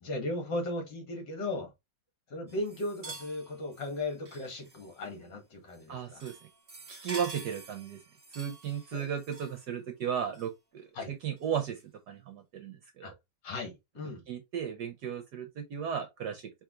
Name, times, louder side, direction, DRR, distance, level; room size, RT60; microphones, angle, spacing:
voice 1, 0.0-1.7 2.3-6.3 8.9-9.1 10.9-11.1 13.0-13.1 13.4-14.2, left 2 dB, 60° left, 2.3 m, -36 dB
sound 1, 2.5-5.2 5.7-5.9 6.2-9.7 10.3-10.5 11.4-11.5, right 3 dB, 35° right, 1.2 m, -48 dB
voice 2, 5.9-6.4 7.0-8.0 8.3-11.8 12.1-13.1 14.3-16.5, right 8 dB, 65° right, 1.1 m, -35 dB
4.9 x 3.0 x 3.6 m
omnidirectional pair, 2.3 m